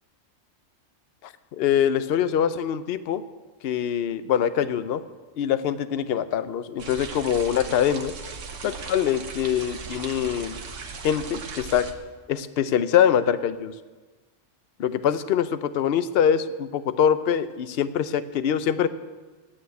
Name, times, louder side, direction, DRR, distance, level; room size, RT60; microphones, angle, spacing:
voice 1, 1.2-3.2 3.6-5.0 5.4-8.1 8.6-10.6 11.0-11.9 12.3-13.7 14.8-18.9, left 9 dB, 60° left, 13 dB, 0.8 m, -24 dB
sound 1, 6.8-11.9, right 4 dB, 80° right, 1.4 m, -37 dB
9.7 x 8.6 x 9.5 m, 1.3 s
omnidirectional pair, 1.2 m